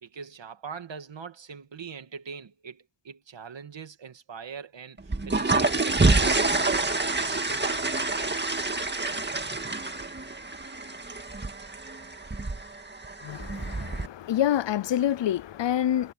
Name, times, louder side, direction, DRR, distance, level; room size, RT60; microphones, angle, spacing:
voice 1, 0.0-6.8 7.2-7.8, right 6 dB, 80° right, 2.1 m, -42 dB
sound 1, 5.0-14.1, right 3 dB, 25° right, 1.9 m, -27 dB
voice 2, 13.2-16.1, left 11 dB, 80° left, 0.6 m, -27 dB
wide cardioid pair, 125°, 43 cm